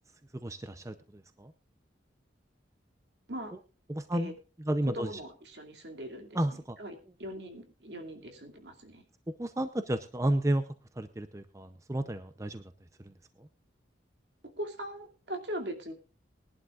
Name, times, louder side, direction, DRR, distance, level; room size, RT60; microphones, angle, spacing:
voice 1, 0.4-1.5 3.9-4.3 4.6-5.1 6.3-6.8 9.4-10.6 11.0-12.6 13.0-13.1 13.4-13.5, right 1 dB, 15° right, 10 dB, 0.6 m, -32 dB
voice 2, 4.7-6.4 6.8-9.0 14.6-15.9, equal, 70° right, 4 dB, 2.6 m, -40 dB
21.0 x 11.5 x 2.5 m, 0.34 s
head